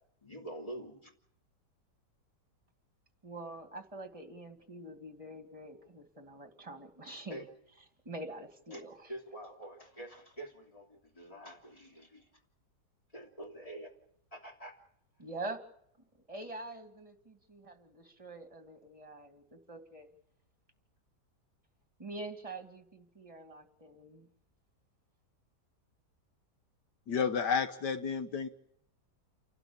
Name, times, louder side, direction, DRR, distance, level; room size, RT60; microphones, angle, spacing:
voice 1, 0.2-1.1 7.3-7.4 8.7-8.8 9.1-12.2 13.1-13.9 14.3-14.8, right 1 dB, 20° left, 2 dB, 3.2 m, -46 dB
voice 2, 3.2-7.5 8.0-9.1 15.2-15.6 16.3-20.1 22.0-24.3, right 2 dB, 20° right, 7 dB, 2.3 m, -45 dB
voice 3, 27.1-28.5, left 6 dB, 75° left, 10 dB, 1.7 m, -31 dB
29.5 x 12.0 x 8.9 m, 0.73 s
omnidirectional pair, 1.8 m